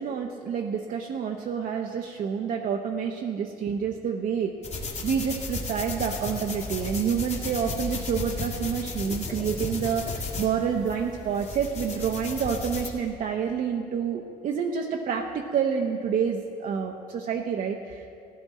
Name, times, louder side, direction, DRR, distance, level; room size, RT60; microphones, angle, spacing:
voice 1, 0.0-4.5 5.0-18.1, right 7 dB, 55° right, 2 dB, 0.8 m, -28 dB
sound 1, 4.6-12.9, left 3 dB, 40° left, 1.8 m, -34 dB
15.5 x 11.5 x 4.2 m, 2.4 s
cardioid pair, 110°, 17 cm